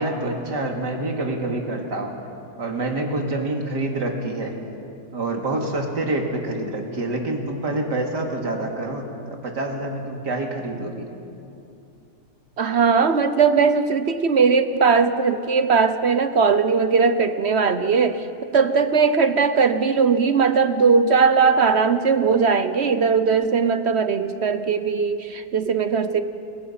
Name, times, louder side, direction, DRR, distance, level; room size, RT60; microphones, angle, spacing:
voice 1, 0.0-2.2 2.6-4.5 5.1-11.1, right 2 dB, 85° right, 1 dB, 3.2 m, -27 dB
voice 2, 12.6-18.3 18.5-26.2, right 5 dB, 50° right, 10 dB, 1.0 m, -19 dB
28.0 x 23.0 x 5.8 m, 2.7 s
omnidirectional pair, 1.8 m